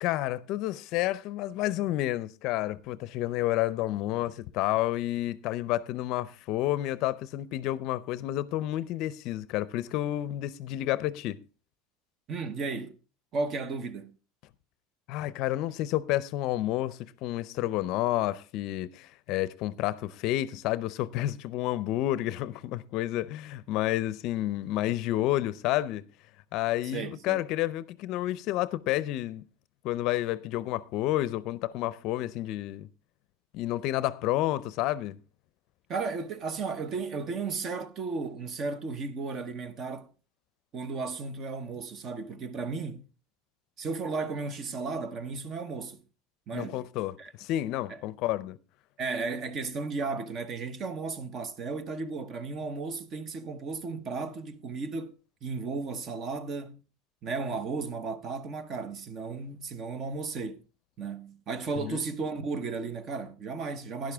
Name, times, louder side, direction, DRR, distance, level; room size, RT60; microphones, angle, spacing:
voice 1, 0.0-11.4 15.1-26.0 26.5-29.4 29.8-32.9 33.5-35.2 46.5-48.6 61.8-62.0, left 15 dB, 55° left, 0.6 m, -30 dB
voice 2, 12.3-13.0 13.3-14.2 26.8-27.4 35.9-40.1 40.7-43.1 43.8-46.0 46.5-46.9 47.2-47.3 47.9-48.0 49.0-55.1 55.4-56.8 57.2-60.6 61.0-64.1, right 4 dB, 35° right, 1.0 m, -34 dB
12.0 x 10.5 x 3.5 m
supercardioid pair, 140°, 0 cm